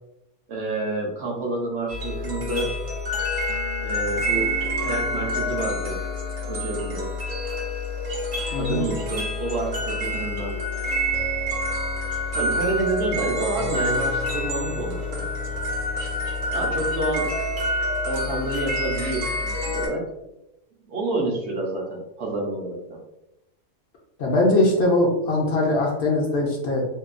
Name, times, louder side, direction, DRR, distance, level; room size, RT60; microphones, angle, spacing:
voice 1, 0.5-2.7 3.8-4.6 4.8-6.0 6.4-7.1 8.6-10.5 12.4-15.2 16.5-17.3 18.1-20.1 20.9-23.0, right 2 dB, 65° right, 0 dB, 0.8 m, -28 dB
sound 1, 1.9-19.9, left 1 dB, 85° right, 1.1 m, -27 dB
voice 2, 8.5-8.8 24.2-26.9, left 2 dB, 65° left, -1 dB, 0.7 m, -21 dB
2.8 x 2.2 x 2.4 m, 0.89 s
omnidirectional pair, 1.3 m